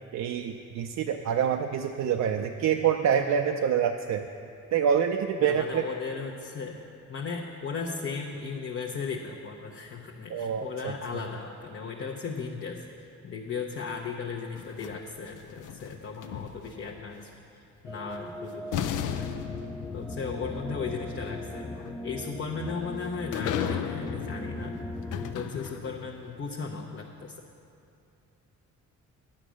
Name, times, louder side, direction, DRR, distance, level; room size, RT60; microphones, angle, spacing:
voice 1, 0.1-4.2 4.7-5.9 10.3-10.9, right 8 dB, 65° right, 5 dB, 0.5 m, -26 dB
voice 2, 5.4-6.8 7.1-19.3 19.9-21.7 22.0-24.8 25.2-27.3, left 5 dB, 40° left, 0 dB, 0.8 m, -36 dB
sound 1, 14.6-16.9 18.2-18.3 18.7-26.2, left 8 dB, 85° left, 0.6 m, -36 dB
sound 2, 17.9-25.3, left 1 dB, 5° left, 0.4 m, -39 dB
10.0 x 8.6 x 6.3 m, 2.5 s
cardioid pair, 125°, 30 cm